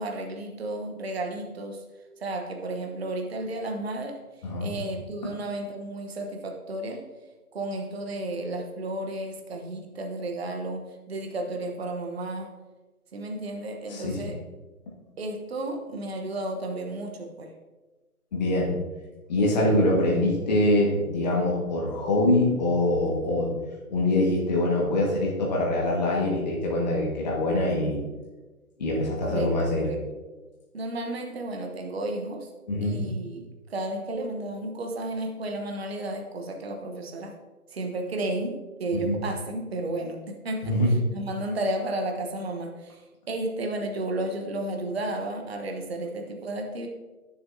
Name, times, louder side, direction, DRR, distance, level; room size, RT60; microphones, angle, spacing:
voice 1, 0.0-1.8 2.2-4.2 4.6-7.1 7.5-12.5 13.1-14.4 15.2-17.5 29.2-30.0 30.7-32.5 32.8-37.3 37.7-40.8 41.1-43.0 43.3-46.9, right 2 dB, 45° right, 3 dB, 1.0 m, -33 dB
voice 2, 4.4-4.7 13.9-14.3 18.3-18.7 19.3-23.5 23.9-28.0 28.8-29.9 32.7-33.0 38.9-39.2 40.6-40.9, left 1 dB, 30° left, -3 dB, 1.5 m, -24 dB
10.5 x 7.0 x 2.7 m, 1.2 s
figure-of-eight pair, 150°, 45 cm